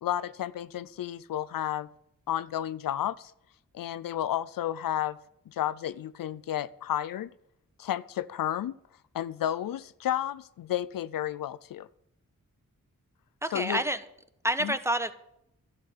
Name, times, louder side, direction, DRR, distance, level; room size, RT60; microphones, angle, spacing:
voice 1, 0.0-1.9 2.3-3.3 3.7-5.2 5.5-7.3 7.8-8.8 9.1-11.9 13.5-13.8 14.6-14.7, left 11 dB, 85° left, 15 dB, 0.5 m, -32 dB
voice 2, 13.4-14.0 14.4-15.1, right 1 dB, 10° right, 11 dB, 1.2 m, -28 dB
11.5 x 7.4 x 9.3 m, 0.77 s
cardioid pair, 50°, 33 cm